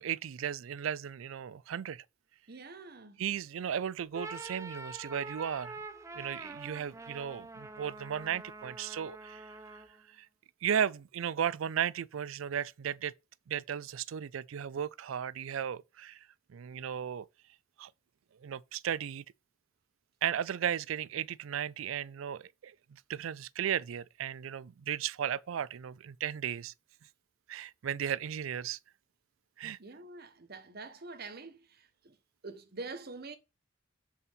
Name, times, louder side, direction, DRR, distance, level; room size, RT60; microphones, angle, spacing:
voice 1, 0.0-2.0 3.2-5.8 6.1-9.4 10.2-10.3 10.6-13.1 13.5-16.2 16.5-17.3 17.8-17.9 18.4-19.2 20.2-26.7 27.5-28.8 29.6-29.8, right 9 dB, 85° right, 0.4 m, -35 dB
voice 2, 2.5-3.2 29.8-31.6 32.0-32.2 32.4-33.4, right 3 dB, 50° right, 1.0 m, -45 dB
sound 1, 4.0-10.0, right 3 dB, 15° right, 0.6 m, -45 dB
7.4 x 4.1 x 5.5 m
head